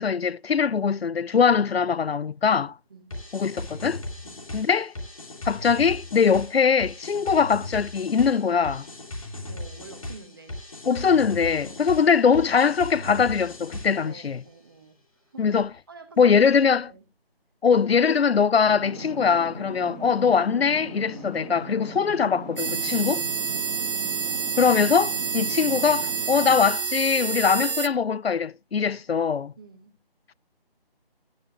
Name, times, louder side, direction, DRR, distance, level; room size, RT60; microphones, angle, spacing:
voice 1, 0.0-2.7 3.3-4.0 4.5-4.9 5.5-8.9 10.9-14.4 15.4-15.7 16.2-16.8 17.6-23.2 24.6-29.5, left 6 dB, 75° left, 0.6 m, -22 dB
sound 1, 3.1-14.2, left 1 dB, 35° left, 2.5 m, -37 dB
voice 2, 9.5-10.6 11.7-12.1 14.0-17.0 23.5-23.9 29.6-30.0, right 4 dB, 20° right, 1.4 m, -49 dB
sound 2, 18.7-26.6, equal, ahead, 1.8 m, -39 dB
sound 3, 22.6-27.9, right 6 dB, 60° right, 0.9 m, -28 dB
12.5 x 10.0 x 2.9 m
figure-of-eight pair, 165°, 31 cm